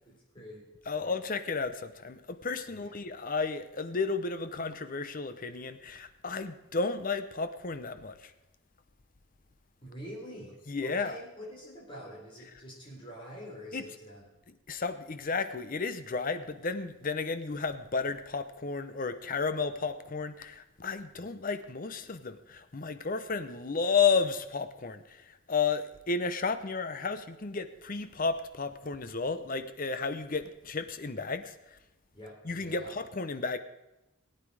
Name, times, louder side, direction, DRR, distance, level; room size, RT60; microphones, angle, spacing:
voice 1, 0.1-1.2 2.7-3.0 9.8-14.2 21.1-21.3 32.1-33.0, equal, 25° left, -3 dB, 3.9 m, -46 dB
voice 2, 0.9-8.3 10.7-11.2 13.7-13.8 14.7-25.2 25.5-31.5 32.4-33.6, left 4 dB, 40° left, 11 dB, 0.7 m, -32 dB
17.5 x 9.2 x 4.8 m, 0.97 s
head